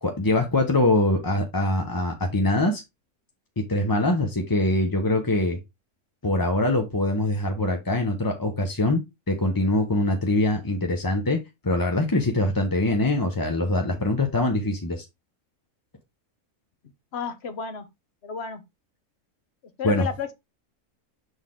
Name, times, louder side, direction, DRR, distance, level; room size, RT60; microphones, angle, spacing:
voice 1, 0.0-2.8 3.6-5.6 6.2-11.4 11.6-15.0 19.8-20.0, left 2 dB, 20° left, 0.6 m, -23 dB
voice 2, 17.1-17.9 18.2-18.6 19.8-20.3, left 6 dB, 50° left, 1.2 m, -31 dB
7.1 x 4.1 x 3.7 m
omnidirectional pair, 1.6 m